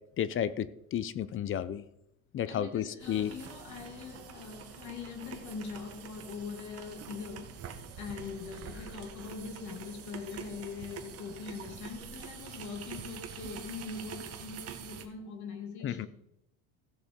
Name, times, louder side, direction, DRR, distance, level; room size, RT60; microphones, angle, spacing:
voice 1, 0.2-1.8 2.3-3.3 15.8-16.1, left 10 dB, 35° left, 0.6 m, -32 dB
voice 2, 2.5-7.7 8.0-16.1, left 5 dB, 55° left, 2.4 m, -42 dB
sound 1, 3.0-15.1, right 7 dB, 40° right, 1.7 m, -46 dB
15.0 x 6.8 x 5.2 m
supercardioid pair, 115°, 36 cm